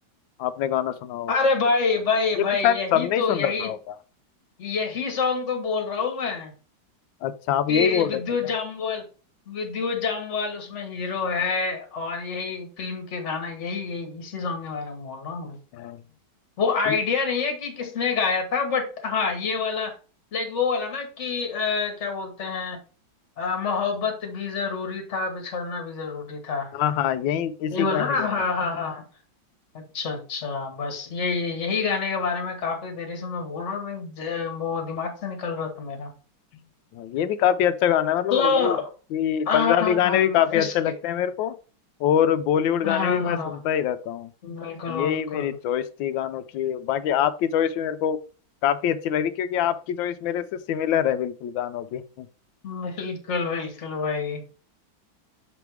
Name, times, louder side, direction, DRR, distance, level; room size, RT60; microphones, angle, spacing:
voice 1, 0.4-1.3 2.4-3.8 7.2-8.2 15.7-16.0 16.9-17.0 26.7-28.3 36.5-36.6 36.9-38.8 39.1-41.5 42.0-44.3 44.9-48.2 48.6-52.3, left 9 dB, 75° left, 12 dB, 1.3 m, -24 dB
voice 2, 1.3-3.7 4.6-6.5 7.7-9.0 9.5-15.6 16.6-19.9 20.3-22.8 23.4-26.7 27.7-29.0 29.7-36.1 38.3-38.9 39.5-40.7 42.8-43.6 44.4-45.6 52.6-54.4, left 5 dB, 40° left, 4 dB, 1.5 m, -27 dB
6.7 x 3.5 x 4.6 m, 0.36 s
omnidirectional pair, 2.2 m